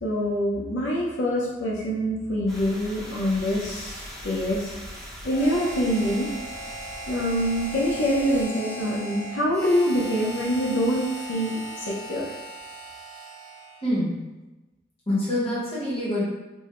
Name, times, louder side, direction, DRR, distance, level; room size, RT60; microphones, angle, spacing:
voice 1, 0.0-4.7 5.2-6.3 7.1-12.3, equal, 90° left, -4 dB, 0.6 m, -25 dB
sound 1, 2.5-8.4, equal, 5° left, 0.7 m, -41 dB
Harmonica, 5.3-13.9, right 1 dB, 70° left, 1.2 m, -38 dB
voice 2, 13.8-14.2 15.1-16.3, left 1 dB, 30° left, -8 dB, 1.0 m, -25 dB
3.4 x 2.1 x 2.9 m, 1.1 s
head